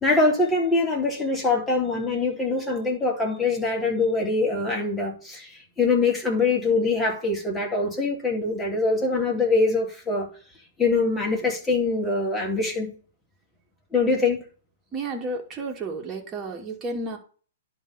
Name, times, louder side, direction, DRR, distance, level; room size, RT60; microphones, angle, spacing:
voice 1, 0.0-10.3 10.8-12.9 13.9-14.4, left 3 dB, 10° left, 3.6 m, -23 dB
voice 2, 14.9-17.2, right 2 dB, 25° right, 2.6 m, -32 dB
11.0 x 3.8 x 7.2 m
hypercardioid pair, 120°, 0 cm